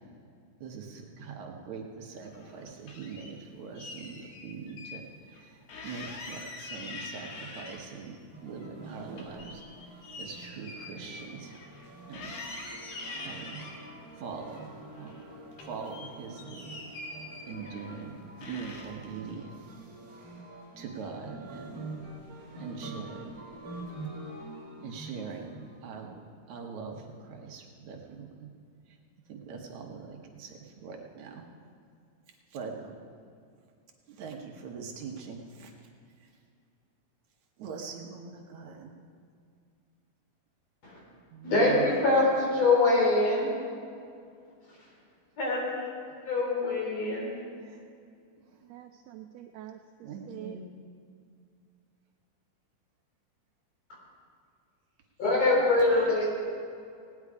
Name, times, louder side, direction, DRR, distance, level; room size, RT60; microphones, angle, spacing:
voice 1, 0.6-11.5 12.1-12.4 13.2-15.1 15.6-16.8 17.5-19.6 20.8-21.9 22.6-23.4 24.8-28.5 28.9-29.0 29.3-31.4 32.5-33.0 34.1-35.9 36.2-36.3 37.6-38.9 41.3-41.8 50.0-50.6, right 5 dB, 70° right, 1 dB, 2.3 m, -42 dB
sound 1, 2.3-3.3 3.8-5.0 5.3-5.4 5.7-8.1 8.5-11.9 12.1-13.8 14.4-15.3 15.5-18.0 18.4-19.1, left 3 dB, 85° left, 3.0 m, -44 dB
sound 2, 8.3-26.1, right 2 dB, 30° right, 2.4 m, -46 dB
voice 2, 41.4-43.5 44.6-44.9 45.4-45.6 46.2-47.3 55.2-56.3, left 2 dB, 55° left, -4 dB, 4.4 m, -24 dB
voice 3, 48.7-49.8 50.3-50.6 55.4-56.1, right 12 dB, 85° right, 6 dB, 1.5 m, -43 dB
18.0 x 9.7 x 4.8 m, 2.3 s
omnidirectional pair, 3.6 m